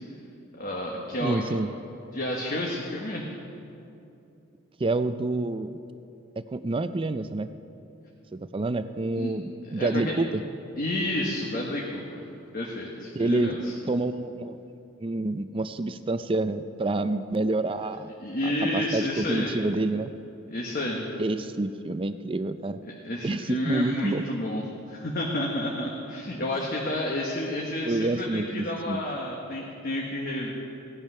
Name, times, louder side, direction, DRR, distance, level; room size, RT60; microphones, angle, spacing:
voice 1, 0.6-1.4 2.1-3.2 9.1-9.3 9.8-10.1 10.8-12.3 12.5-13.7 18.2-19.5 20.5-21.0 22.8-30.5, left 1 dB, 45° left, -1 dB, 1.3 m, -30 dB
voice 2, 1.2-1.7 4.8-5.7 6.4-7.5 8.3-10.4 13.1-13.6 13.9-14.6 15.0-18.1 18.4-20.1 21.2-22.8 23.2-24.3 27.8-29.0, right 2 dB, 25° right, 11 dB, 0.4 m, -28 dB
17.5 x 10.5 x 5.6 m, 2.8 s
head